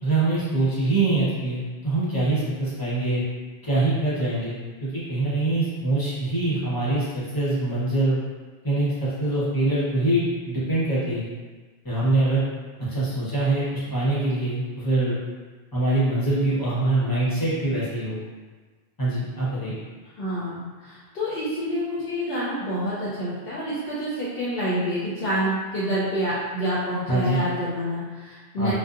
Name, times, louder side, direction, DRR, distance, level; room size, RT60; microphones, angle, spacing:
voice 1, 0.0-3.2 3.6-8.2 8.6-11.3 11.8-12.4 12.8-15.2 15.7-18.2 19.0-19.8 27.1-27.4 28.6-28.7, right 2 dB, 25° left, -10 dB, 0.7 m, -24 dB
voice 2, 20.2-28.7, equal, 70° left, -8 dB, 0.7 m, -27 dB
2.6 x 2.1 x 2.4 m, 1.4 s
omnidirectional pair, 1.0 m